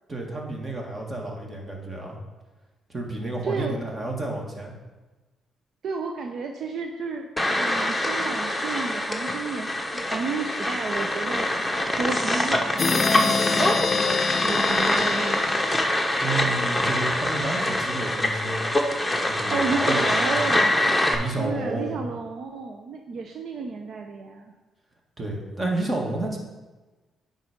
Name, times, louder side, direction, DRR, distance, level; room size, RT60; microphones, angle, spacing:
voice 1, 0.1-2.2 2.9-4.8 16.2-18.6 19.2-20.4 21.1-22.1 25.2-26.4, right 2 dB, 25° right, 0 dB, 1.8 m, -31 dB
voice 2, 3.4-3.8 5.8-15.4 19.5-20.8 21.4-24.5, right 4 dB, 65° right, 3 dB, 0.6 m, -32 dB
sound 1, 7.4-21.2, left 1 dB, 5° left, 1.1 m, -24 dB
sound 2, 12.8-16.4, left 5 dB, 40° left, 0.3 m, -27 dB
10.0 x 4.1 x 5.0 m, 1.2 s
cardioid pair, 90°, 0 cm